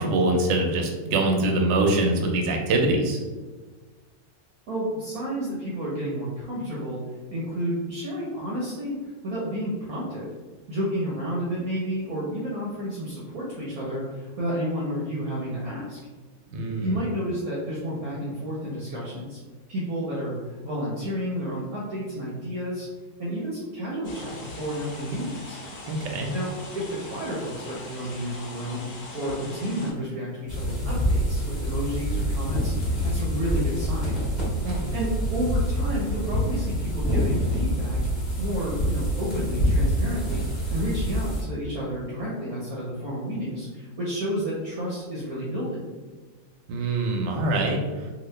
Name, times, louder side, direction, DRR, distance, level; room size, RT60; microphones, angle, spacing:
voice 1, 0.0-3.2 16.5-17.0 25.9-26.3 34.6-34.9 46.7-47.8, right 2 dB, 85° right, 1 dB, 1.3 m, -24 dB
voice 2, 4.7-7.0 7.3-9.0 9.2-10.3 10.7-16.0 16.8-19.4 19.7-22.9 23.2-25.6 26.3-34.2 34.7-38.0 38.4-45.9, equal, 65° right, -5 dB, 1.0 m, -31 dB
sound 1, 24.0-29.9, left 2 dB, 60° left, 1.2 m, -41 dB
sound 2, 30.5-41.4, equal, 30° left, 1.0 m, -26 dB
2.9 x 2.7 x 3.2 m, 1.3 s
omnidirectional pair, 1.9 m